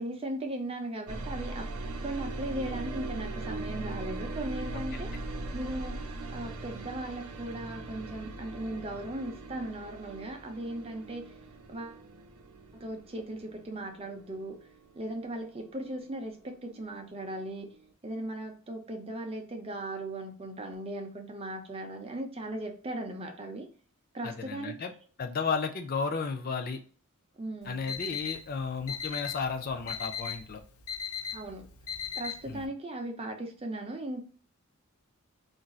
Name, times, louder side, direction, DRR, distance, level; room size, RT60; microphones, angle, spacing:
voice 1, 0.0-1.7 2.0-5.1 5.5-11.3 11.7-12.0 12.7-14.6 14.9-17.7 18.0-23.7 24.1-24.8 27.4-27.9 31.3-31.7 32.2-34.3, right 1 dB, 25° right, 4 dB, 0.6 m, -38 dB
sound 1, 1.1-16.9 17.1-17.9, right 2 dB, 80° right, 0.6 m, -40 dB
voice 2, 24.2-24.9 25.2-26.8 27.7-30.6 32.5-32.7, left 5 dB, 40° left, 6 dB, 0.4 m, -33 dB
Alarm, 27.6-32.6, left 7 dB, 85° left, 0.7 m, -38 dB
4.3 x 2.6 x 2.3 m, 0.43 s
head